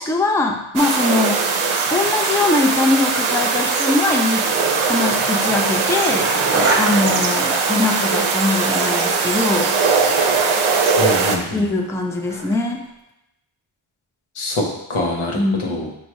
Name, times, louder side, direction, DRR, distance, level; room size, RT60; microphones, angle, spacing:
voice 1, 0.0-1.4 1.9-4.5 4.8-6.4 6.7-9.8 11.5-12.8 15.3-15.8, left 2 dB, 5° left, 3 dB, 0.4 m, -21 dB
sound 1, 0.8-11.4, right 4 dB, 75° right, 0.6 m, -20 dB
Skateboard, 4.4-12.8, right 3 dB, 30° right, 0.9 m, -29 dB
voice 2, 11.0-11.6 14.4-15.9, left 2 dB, 85° left, -1 dB, 0.9 m, -25 dB
5.9 x 2.6 x 3.0 m, 0.84 s
wide cardioid pair, 65°, 48 cm